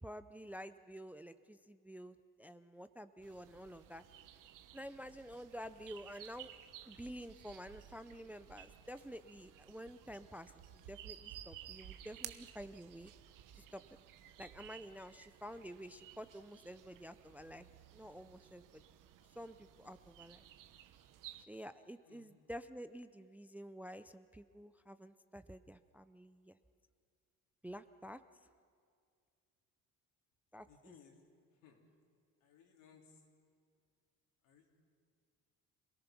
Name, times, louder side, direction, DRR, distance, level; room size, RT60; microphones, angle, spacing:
voice 1, 0.0-4.0 4.7-6.5 6.9-10.5 10.9-13.1 13.6-13.8 14.4-17.7 17.9-18.8 19.4-20.4 21.5-26.6 27.6-28.2 30.5-30.7, equal, 5° right, 12 dB, 0.4 m, -50 dB
sound 1, 3.2-21.5, right 11 dB, 70° right, 1.1 m, -56 dB
voice 2, 30.6-31.2 31.5-31.9 32.4-33.2 34.4-34.8, left 6 dB, 80° left, 1 dB, 3.6 m, -63 dB
27.5 x 18.0 x 6.0 m, 2.2 s
cardioid pair, 130°, 33 cm